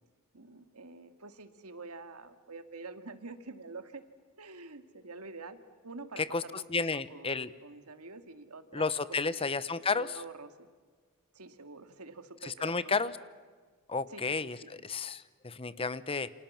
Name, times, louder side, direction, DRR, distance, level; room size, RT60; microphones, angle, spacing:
voice 1, 0.3-4.0 4.4-5.6 5.8-9.6 9.9-10.7 11.3-13.2 14.0-14.8, right 3 dB, 90° right, 10 dB, 2.2 m, -47 dB
voice 2, 6.7-7.5 8.7-10.1 12.4-13.1 13.9-16.3, left 4 dB, 25° left, 16 dB, 0.9 m, -32 dB
29.0 x 27.0 x 7.3 m, 1.5 s
head